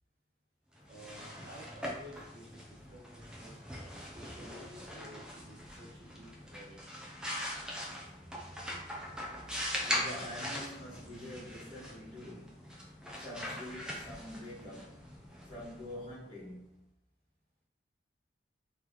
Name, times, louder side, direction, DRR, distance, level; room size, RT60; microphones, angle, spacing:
sound 1, 0.8-16.4, equal, 5° right, 0.5 m, -41 dB
voice 1, 0.9-6.9, equal, 50° right, 0.7 m, -53 dB
voice 2, 9.5-15.1 15.4-16.9, left 1 dB, 20° left, 1.4 m, -46 dB
3.3 x 3.1 x 3.8 m
head